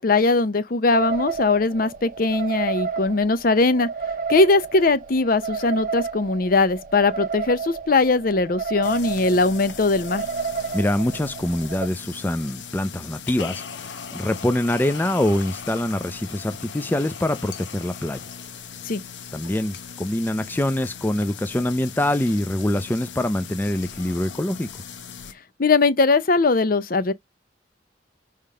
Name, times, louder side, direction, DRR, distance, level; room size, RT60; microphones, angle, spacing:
voice 1, 0.0-3.9 4.3-10.2 18.8-19.0 25.6-27.1, left 3 dB, 55° left, 0.6 m, -20 dB
sound 1, 0.9-11.9, right 5 dB, 50° right, 0.5 m, -31 dB
sound 2, 8.8-25.3, left 6 dB, 85° left, 0.9 m, -38 dB
voice 2, 10.7-18.2 19.3-24.7, left 1 dB, 10° left, 0.4 m, -24 dB
4.9 x 3.6 x 5.5 m
head